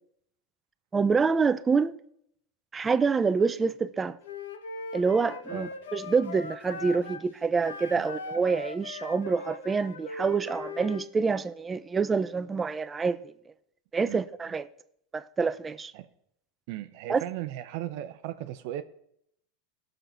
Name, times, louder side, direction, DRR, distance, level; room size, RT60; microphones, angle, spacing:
voice 1, 0.9-2.0 2.7-4.2 4.9-13.3 13.9-14.7 15.1-15.9 17.1-17.2, right 5 dB, 20° right, 0.5 m, -27 dB
Wind instrument woodwind instrument, 4.2-7.2 7.6-11.1, left 3 dB, 85° left, 1.1 m, -40 dB
voice 2, 16.7-18.8, right 13 dB, 65° right, 0.7 m, -36 dB
17.0 x 6.5 x 4.4 m
hypercardioid pair, 110°, 0 cm